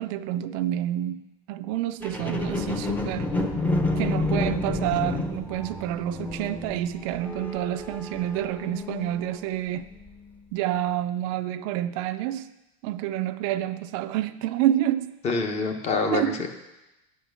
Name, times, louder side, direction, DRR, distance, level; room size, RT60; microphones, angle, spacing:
voice 1, 0.0-3.3 4.0-9.9 10.5-12.5 12.8-15.1 16.1-16.5, right 12 dB, 60° right, 11 dB, 0.4 m, -28 dB
sound 1, 2.0-9.4 10.0-10.1, left 2 dB, 10° left, 0.7 m, -29 dB
voice 2, 15.2-16.5, left 4 dB, 35° left, 5 dB, 1.0 m, -26 dB
8.9 x 4.4 x 6.8 m, 0.97 s
supercardioid pair, 135°, 19 cm